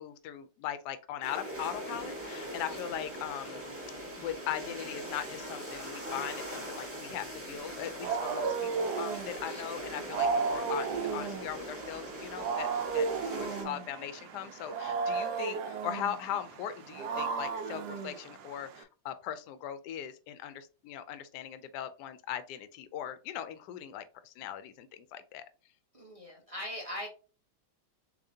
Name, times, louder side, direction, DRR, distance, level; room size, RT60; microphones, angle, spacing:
voice 1, 0.0-3.6 4.2-10.9 11.1-12.7 12.9-13.1 13.4-25.4, left 10 dB, 70° left, 11 dB, 1.1 m, -39 dB
sound 1, 1.2-13.6, equal, 10° right, 1.1 m, -41 dB
voice 2, 2.7-3.0 9.4-9.7 25.9-27.1, left 1 dB, 30° right, -1 dB, 0.6 m, -41 dB
Wild animals, 7.6-18.8, right 5 dB, 70° right, 1.0 m, -34 dB
6.9 x 2.5 x 2.7 m, 0.36 s
omnidirectional pair, 2.1 m